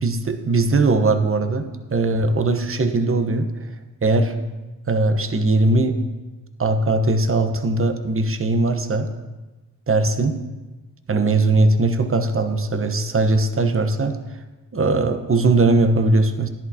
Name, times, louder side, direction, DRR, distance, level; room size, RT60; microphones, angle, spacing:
voice 1, 0.0-3.5 4.0-4.3 4.9-6.0 6.6-9.1 9.9-10.4 11.1-14.1 14.7-16.5, right 2 dB, 30° right, 8 dB, 1.1 m, -19 dB
13.0 x 10.5 x 2.9 m, 1.2 s
supercardioid pair, 50°, 43 cm